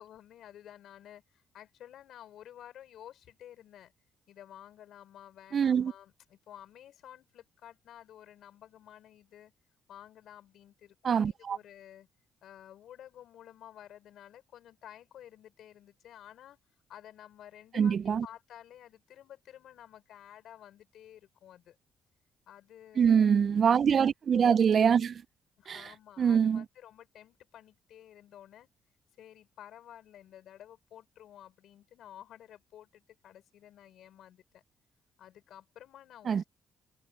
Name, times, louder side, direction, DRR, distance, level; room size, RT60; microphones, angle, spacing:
voice 1, 0.0-3.9 4.3-9.5 9.9-12.1 12.4-16.6 16.9-21.7 22.5-23.3 23.6-23.7 25.6-28.7 29.2-34.6 35.2-36.5, left 11 dB, 75° left, 5.0 m, -52 dB
voice 2, 5.5-5.9 11.0-11.6 17.8-18.3 23.0-25.2 25.7-25.9 26.2-26.6 36.3-36.4, right 7 dB, 50° right, 0.3 m, -24 dB
cardioid pair, 90°, 0 cm